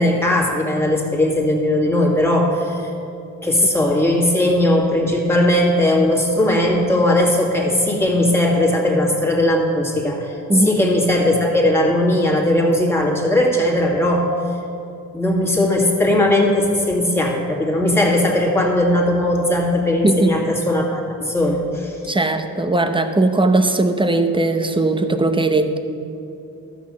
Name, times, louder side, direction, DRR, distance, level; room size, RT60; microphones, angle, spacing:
voice 1, 0.0-2.9 3.4-10.4 10.6-14.3 15.1-22.0, left 1 dB, 5° left, -2 dB, 2.2 m, -18 dB
voice 2, 20.0-20.3 22.1-25.8, right 2 dB, 15° right, 7 dB, 0.8 m, -18 dB
13.0 x 6.2 x 7.4 m, 2.8 s
cardioid pair, 95°, 35 cm